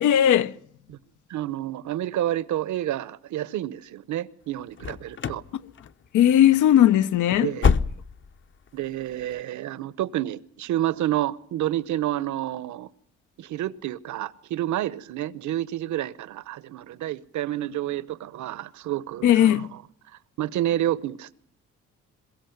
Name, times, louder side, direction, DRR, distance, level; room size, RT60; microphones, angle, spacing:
voice 1, 0.0-0.5 6.1-7.5 19.2-19.7, left 11 dB, 80° left, 0.9 m, -18 dB
voice 2, 1.3-5.4 7.4-7.7 8.7-12.9 13.4-19.8 20.4-21.4, right 13 dB, 70° right, 1.0 m, -29 dB
sound 1, 4.8-5.5 5.8-6.2 6.5-6.7 7.1-8.4 8.7-8.8 9.3-9.4, left 5 dB, 40° left, 0.9 m, -26 dB
22.5 x 15.5 x 9.3 m
cardioid pair, 90°, 30 cm